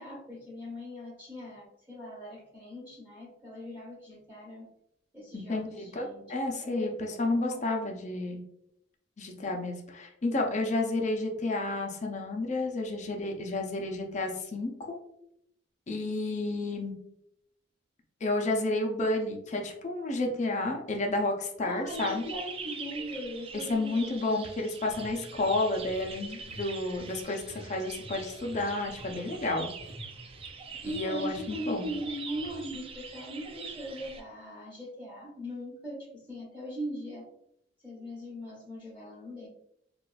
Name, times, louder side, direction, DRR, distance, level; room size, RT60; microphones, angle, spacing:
voice 1, 0.0-4.7 5.1-6.2 6.6-7.7 21.6-24.5 30.8-36.0 36.3-37.2 37.8-39.5, equal, 10° right, -6 dB, 1.3 m, -40 dB
voice 2, 5.3-8.4 9.2-15.0 15.9-16.9 18.2-22.2 23.7-29.7 30.8-31.9, left 2 dB, 40° left, 2 dB, 0.5 m, -31 dB
sound 1, 20.5-20.6 21.2-21.3 24.9-26.1 26.4-26.6 26.9-31.0 31.3-31.5 31.8-32.0 32.4-32.6, left 1 dB, 80° right, 1.1 m, -49 dB
sound 2, 21.9-34.2, right 5 dB, 30° right, 0.4 m, -44 dB
3.9 x 2.4 x 2.3 m, 0.77 s
head